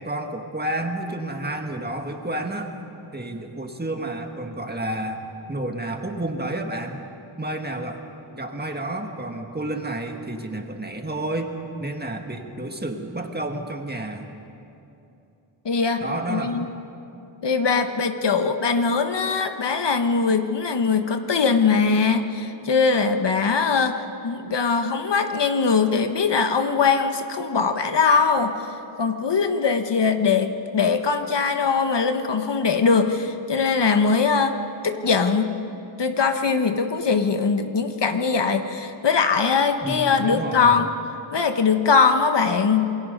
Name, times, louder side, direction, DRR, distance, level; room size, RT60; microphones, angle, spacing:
voice 1, 0.0-2.7 3.1-5.2 5.5-7.0 7.4-8.0 8.3-11.5 11.8-14.3 16.0-16.7 39.8-40.8, right 1 dB, 20° right, 3 dB, 1.9 m, -30 dB
voice 2, 15.6-16.0 16.3-16.7 17.4-28.6 29.0-34.6 34.8-35.6 36.0-40.9 41.3-42.9, left 5 dB, 60° left, 7 dB, 1.2 m, -21 dB
27.5 x 22.0 x 5.4 m, 2.8 s
wide cardioid pair, 110°, 46 cm